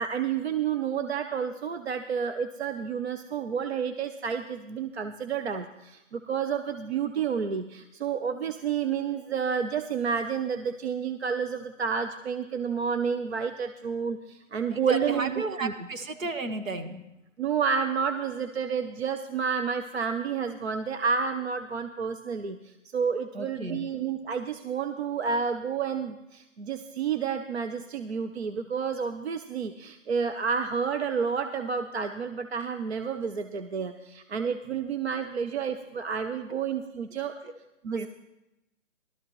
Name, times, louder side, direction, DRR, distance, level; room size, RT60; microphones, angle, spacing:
voice 1, 0.0-15.7 17.4-37.3 37.8-38.1, right 6 dB, 55° right, 8 dB, 0.6 m, -30 dB
voice 2, 14.7-17.0 23.3-23.9 36.5-36.6 37.4-37.5 38.0-38.1, right 2 dB, 90° right, 7 dB, 1.4 m, -34 dB
16.5 x 12.5 x 3.1 m, 0.93 s
hypercardioid pair, 175°, 39 cm